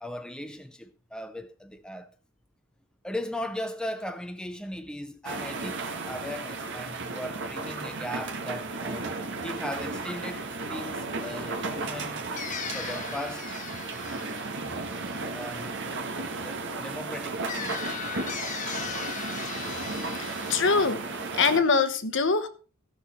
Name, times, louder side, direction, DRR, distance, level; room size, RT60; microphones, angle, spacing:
voice 1, 0.0-2.1 3.0-9.0 9.4-12.3 12.7-13.6 15.3-15.7 16.1-17.8, left 1 dB, 5° left, 0.5 m, -38 dB
sound 1, 5.2-21.6, right 3 dB, 55° right, 1.5 m, -34 dB
sound 2, 11.1-15.9 17.5-20.9, left 6 dB, 35° left, 1.2 m, -39 dB
voice 2, 20.2-21.0 21.3-22.5, left 4 dB, 55° left, 1.1 m, -23 dB
15.5 x 6.7 x 4.3 m
head